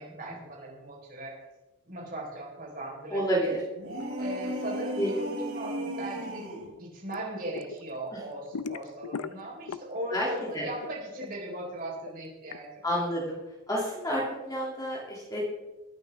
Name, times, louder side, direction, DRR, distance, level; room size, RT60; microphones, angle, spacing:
voice 1, 0.0-1.4 1.8-3.6 4.2-6.5 6.8-13.1, right 1 dB, 40° right, -3 dB, 4.5 m, -38 dB
voice 2, 3.1-3.6 5.0-5.1 10.1-10.3 10.5-10.6 12.8-13.4 13.7-15.4, equal, 15° left, -6 dB, 2.6 m, -29 dB
sound 1, 3.8-6.7, equal, 65° right, 4.1 m, -35 dB
sound 2, 7.1-7.8 8.1-10.1 10.4-12.6, left 5 dB, 90° left, 0.5 m, -38 dB
21.5 x 8.8 x 3.6 m, 1.0 s
head